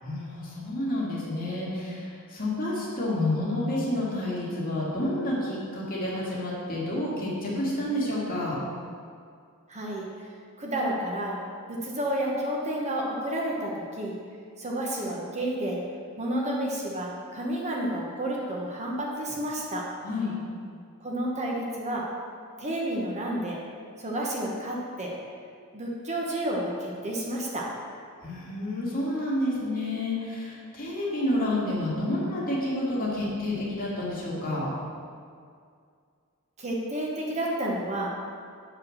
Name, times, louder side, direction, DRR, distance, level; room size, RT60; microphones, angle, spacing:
voice 1, 0.0-8.6 20.0-20.4 28.2-34.7, left 1 dB, 40° left, -6 dB, 2.2 m, -29 dB
voice 2, 9.7-10.1 10.6-11.4 11.7-14.2 14.6-15.8 16.2-19.9 21.0-22.1 22.6-23.6 24.0-25.1 25.7-27.7 36.6-38.1, right 1 dB, 30° right, -3 dB, 1.2 m, -30 dB
8.1 x 4.8 x 6.4 m, 2.2 s
head